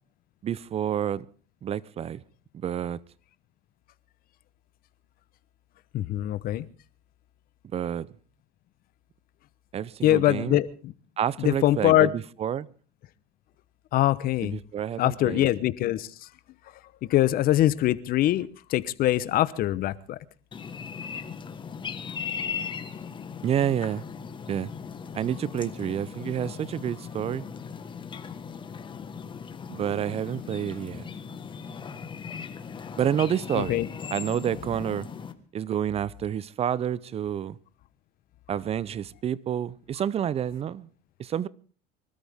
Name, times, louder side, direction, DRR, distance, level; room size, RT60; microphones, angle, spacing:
voice 1, 0.4-1.3 1.6-2.2 2.5-3.0 7.7-8.1 9.7-10.6 11.2-12.7 14.4-15.5 23.4-24.0 24.5-24.7 25.1-27.4 29.7-31.1 33.0-33.8 34.1-35.1 35.5-37.6 38.5-40.9 41.2-41.5, right 9 dB, 30° right, 0.7 m, -29 dB
voice 2, 5.9-6.7 10.0-10.9 11.4-12.1 13.9-14.6 15.0-16.1 17.0-20.2 33.5-33.9, left 14 dB, 50° left, 1.0 m, -23 dB
sound 1, 20.5-35.3, left 6 dB, 25° left, 1.5 m, -38 dB
24.5 x 13.5 x 3.6 m
supercardioid pair, 120°, 19 cm